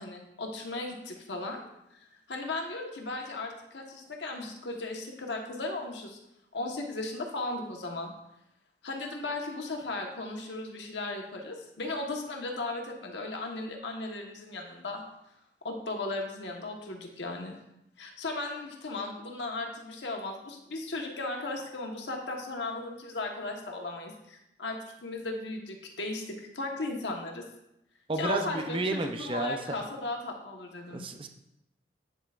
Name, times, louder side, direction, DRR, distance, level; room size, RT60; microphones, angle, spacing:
voice 1, 0.0-1.6 2.3-6.2 6.5-8.1 8.8-15.0 15.6-17.6 18.0-27.4 28.2-31.1, left 2 dB, 85° left, 1 dB, 1.3 m, -36 dB
voice 2, 28.1-29.6 30.9-31.3, right 2 dB, 30° right, 5 dB, 0.6 m, -31 dB
9.0 x 7.7 x 2.5 m, 0.86 s
head